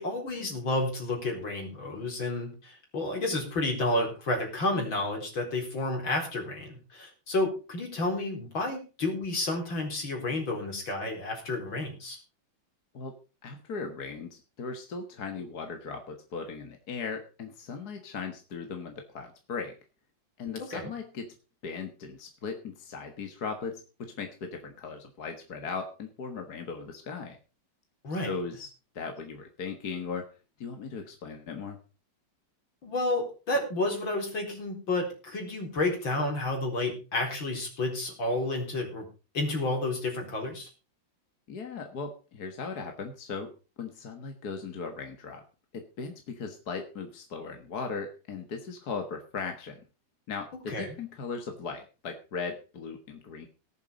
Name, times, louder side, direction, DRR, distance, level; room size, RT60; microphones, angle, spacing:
voice 1, 0.0-12.2 20.6-20.9 28.0-28.3 32.8-39.1 39.3-40.7 50.7-50.9, left 2 dB, 70° left, 1 dB, 5.0 m, -31 dB
voice 2, 13.4-19.8 20.4-21.3 21.6-27.4 28.2-28.7 29.0-30.3 30.6-31.8 41.5-43.5 43.8-45.4 45.7-49.8 50.3-53.5, left 5 dB, 50° left, 5 dB, 2.0 m, -38 dB
18.5 x 7.4 x 5.1 m, 0.33 s
omnidirectional pair, 2.2 m